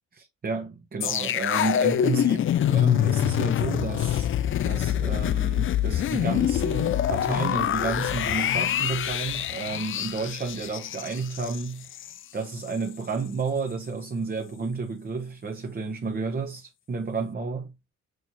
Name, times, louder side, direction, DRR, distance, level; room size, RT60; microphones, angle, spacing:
voice 1, 0.2-4.3 4.6-11.9 12.3-17.7, right 4 dB, 30° right, 0.9 m, -31 dB
sound 1, 1.0-12.2 12.5-12.7, left 11 dB, 45° left, 0.4 m, -25 dB
6.3 x 3.1 x 2.7 m
cardioid pair, 90°, 30 cm